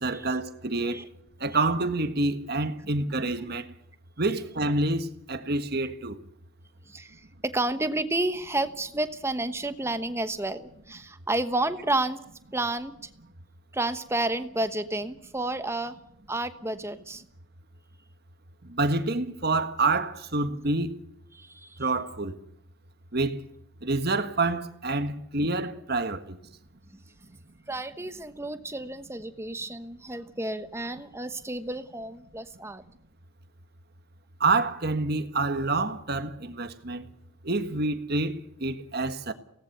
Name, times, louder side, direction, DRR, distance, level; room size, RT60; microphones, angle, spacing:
voice 1, 0.0-1.1 1.4-3.7 4.2-6.2 18.6-20.9 21.8-22.4 23.1-23.4 23.8-26.4 34.4-37.0 37.4-39.3, right 3 dB, 50° right, 1.6 m, -27 dB
voice 2, 6.9-12.2 12.5-12.9 13.7-16.0 16.3-17.2 21.3-21.8 26.9-27.0 27.3-27.4 27.7-32.8, right 2 dB, 10° right, 1.1 m, -31 dB
23.5 x 18.0 x 6.8 m
head